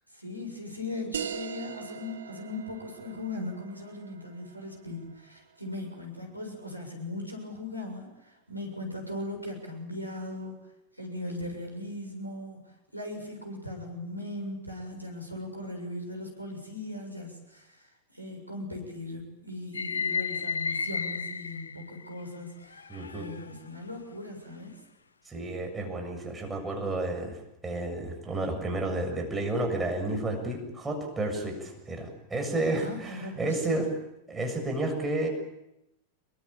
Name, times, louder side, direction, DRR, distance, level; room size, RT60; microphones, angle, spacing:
voice 1, 0.1-10.6 10.9-24.8 32.7-33.8, left 2 dB, 90° right, 2 dB, 6.8 m, -39 dB
sound 1, 1.1-6.2, right 7 dB, 65° right, 1.8 m, -41 dB
sound 2, 19.7-22.2 22.7-23.6, left 5 dB, 75° left, 1.2 m, -33 dB
voice 2, 22.9-23.3 25.3-27.4 27.6-33.9 34.3-35.3, right 2 dB, 15° right, 3 dB, 7.1 m, -31 dB
27.0 x 23.0 x 8.9 m, 0.87 s
figure-of-eight pair, 90°, 0 cm